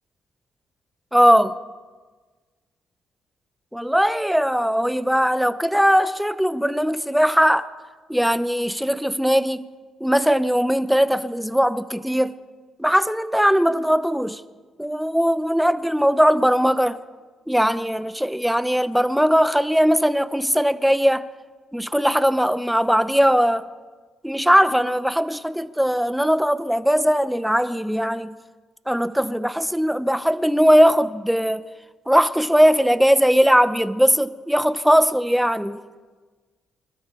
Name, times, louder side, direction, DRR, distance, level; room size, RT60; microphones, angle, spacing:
voice 1, 1.1-1.6 3.7-7.7 8.1-9.7 10.0-12.3 12.8-14.4 14.8-17.0 17.5-21.3 21.7-23.7 24.2-28.4 28.9-31.7 32.1-35.8, equal, ahead, 0.7 m, -19 dB
25.0 x 12.5 x 4.4 m
cardioid pair, 90°, 0 cm